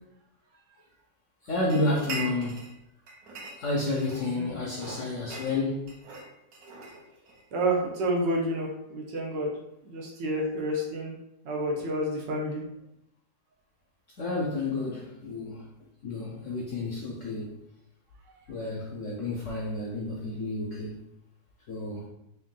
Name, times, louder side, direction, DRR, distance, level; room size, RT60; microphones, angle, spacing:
voice 1, 1.4-2.7 3.6-5.9 14.2-15.7 16.0-17.6 18.5-21.0 21.7-22.1, left 2 dB, 70° left, -3 dB, 0.7 m, -30 dB
sound 1, 1.7-2.8 3.1-4.4 4.7-7.4, right 3 dB, 60° right, 1.2 m, -41 dB
voice 2, 7.5-9.5 9.8-11.1 11.4-12.6, right 1 dB, 85° right, -1 dB, 1.5 m, -29 dB
3.6 x 2.7 x 3.6 m, 0.85 s
omnidirectional pair, 1.9 m